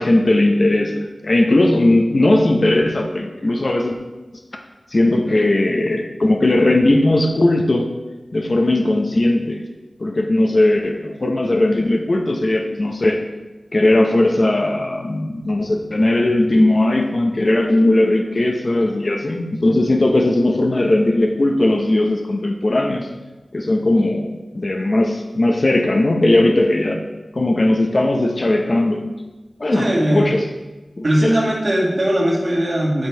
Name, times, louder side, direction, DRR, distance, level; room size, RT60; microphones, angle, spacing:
voice 1, 0.0-4.0 4.9-7.9 8.3-9.6 10.0-13.2 13.7-23.1 23.5-27.0 27.3-29.1 29.6-30.4 31.0-31.4, left 1 dB, 50° left, 3 dB, 0.7 m, -18 dB
voice 2, 29.7-30.3 31.0-33.1, right 1 dB, 55° right, -4 dB, 2.1 m, -19 dB
10.5 x 4.4 x 3.4 m, 1.1 s
cardioid pair, 45°, 0 cm